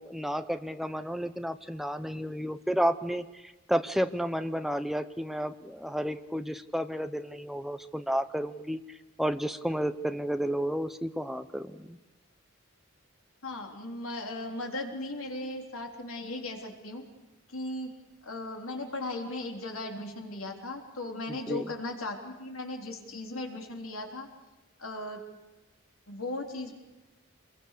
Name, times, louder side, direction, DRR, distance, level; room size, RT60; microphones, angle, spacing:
voice 1, 0.0-12.0 21.3-21.7, equal, ahead, 9 dB, 0.8 m, -32 dB
voice 2, 13.4-17.0 17.5-17.9 18.2-24.3 24.8-25.2 26.1-26.7, left 2 dB, 75° left, 2 dB, 3.7 m, -37 dB
27.0 x 22.0 x 6.8 m, 1.2 s
head